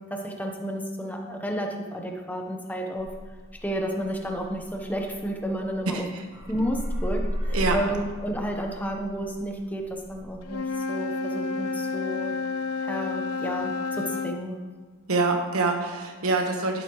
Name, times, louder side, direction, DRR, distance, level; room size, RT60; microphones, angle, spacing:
voice 1, 0.1-3.1 3.6-6.0 6.5-12.3 12.8-14.6, equal, 5° left, 2 dB, 0.9 m, -31 dB
sound 1, 3.0-6.0 6.3-10.5, equal, 55° right, 3.0 m, -34 dB
voice 2, 5.9-6.2 7.5-7.8 15.1-16.8, right 3 dB, 80° right, 3 dB, 1.2 m, -25 dB
Wind instrument woodwind instrument, 10.4-14.4, left 4 dB, 90° left, 0.6 m, -30 dB
11.0 x 8.2 x 3.1 m, 1.4 s
head